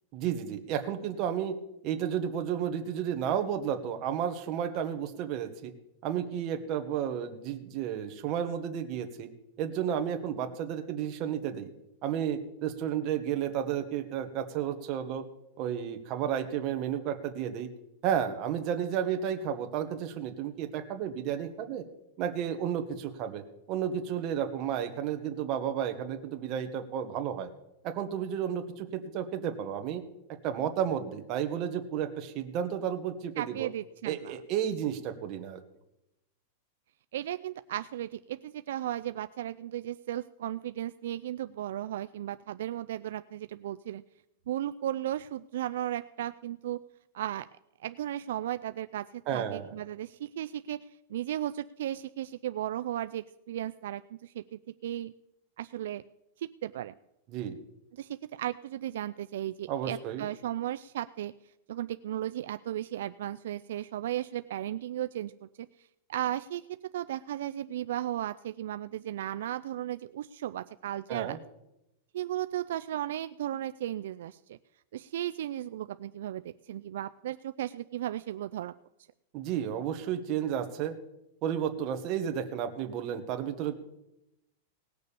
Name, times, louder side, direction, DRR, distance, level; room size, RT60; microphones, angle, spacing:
voice 1, 0.1-1.5 1.8-5.7 6.0-9.3 9.6-11.7 12.0-15.2 15.6-17.7 18.0-21.8 22.2-23.4 23.7-27.5 27.8-30.0 30.4-33.7 34.0-35.6 49.3-49.7 57.3-57.6 59.7-60.3 71.1-71.4 79.3-80.9 81.4-83.7, right 9 dB, 35° right, 5 dB, 1.4 m, -32 dB
voice 2, 33.4-34.4 37.1-44.0 44.5-46.8 47.1-47.5 47.8-50.8 51.1-55.1 55.6-56.0 56.4-56.9 57.9-61.3 61.7-65.7 66.1-66.7 66.9-71.4 72.1-74.6 74.9-78.7, right 12 dB, 70° right, 11 dB, 0.4 m, -35 dB
18.0 x 6.7 x 7.0 m, 0.86 s
supercardioid pair, 165°, 0 cm